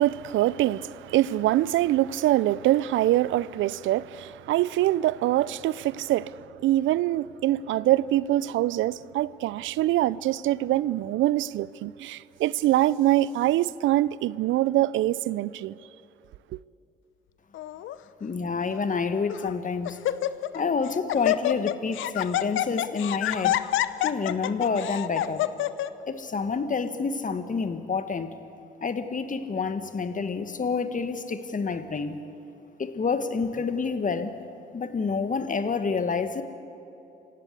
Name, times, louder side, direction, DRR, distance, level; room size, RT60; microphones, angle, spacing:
voice 1, 0.0-15.8, right 14 dB, 70° right, 0.5 m, -24 dB
Laughter, 17.5-17.9 18.7-18.8 19.3-19.6 19.8-20.6 20.9-25.9, left 13 dB, 70° left, 0.8 m, -27 dB
voice 2, 18.2-20.0 20.5-23.6 24.0-25.4 26.1-28.3 28.8-32.2 32.8-34.4 34.7-36.4, left 5 dB, 40° left, 1.7 m, -28 dB
27.0 x 16.0 x 8.4 m
hypercardioid pair, 55°, 21 cm